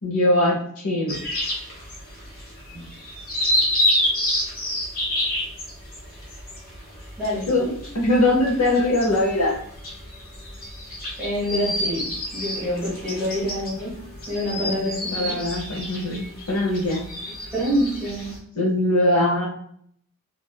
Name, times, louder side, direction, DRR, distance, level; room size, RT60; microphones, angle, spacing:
voice 1, 0.0-0.6 0.8-1.2 7.5-9.6 14.6-14.8 15.1-17.0 18.6-19.5, left 1 dB, 90° left, -3 dB, 0.8 m, -21 dB
sound 1, 1.1-18.4, left 1 dB, 40° left, 1.0 m, -29 dB
voice 2, 7.2-7.5 11.2-12.1 12.3-13.9 14.3-15.4 17.5-18.3, equal, 5° right, -8 dB, 1.2 m, -26 dB
3.5 x 2.6 x 2.2 m, 0.63 s
head